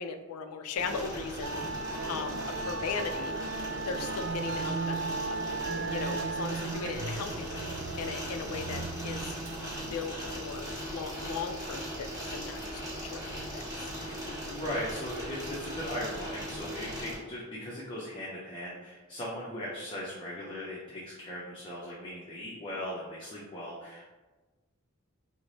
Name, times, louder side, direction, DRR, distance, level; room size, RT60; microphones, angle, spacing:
voice 1, 0.0-1.6 2.1-3.3 3.9-5.5 5.9-9.4 9.9-13.9, left 5 dB, 85° left, 8 dB, 0.3 m, -38 dB
sound 1, 0.7-17.2, equal, 15° right, 1.2 m, -39 dB
Musical instrument, 1.4-16.9, right 4 dB, 65° right, 0.3 m, -38 dB
voice 2, 14.0-24.0, left 1 dB, 25° left, -7 dB, 0.5 m, -38 dB
3.1 x 2.0 x 3.8 m, 1.2 s
head